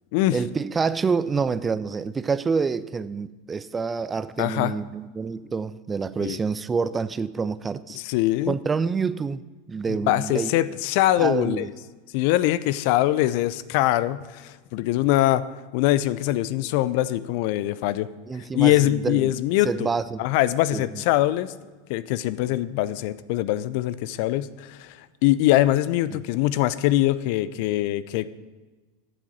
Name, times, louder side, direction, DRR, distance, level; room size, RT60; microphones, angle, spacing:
voice 1, 0.3-8.0 8.5-9.4 9.7-10.5 11.2-11.7 18.3-19.3 19.6-20.2 20.7-20.8 26.1-26.2, right 5 dB, 20° right, 16 dB, 0.5 m, -27 dB
voice 2, 4.4-4.7 6.2-6.4 7.9-8.5 9.9-11.7 12.1-15.4 15.7-18.1 18.5-19.9 20.2-21.5 21.9-28.3, left 15 dB, 60° left, 16 dB, 0.5 m, -23 dB
9.0 x 7.4 x 7.4 m, 1.3 s
hypercardioid pair, 90°, 0 cm